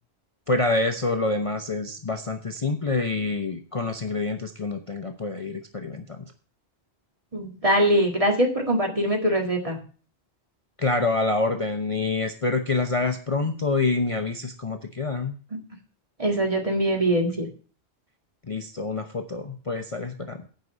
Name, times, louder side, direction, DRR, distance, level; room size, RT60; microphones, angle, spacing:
voice 1, 0.5-6.2 10.8-15.3 18.5-20.4, left 3 dB, 35° left, 5 dB, 0.8 m, -27 dB
voice 2, 7.3-9.8 15.5-15.6 16.2-17.5, right 1 dB, 30° right, 2 dB, 2.0 m, -23 dB
9.2 x 5.3 x 8.1 m, 0.40 s
omnidirectional pair, 1.1 m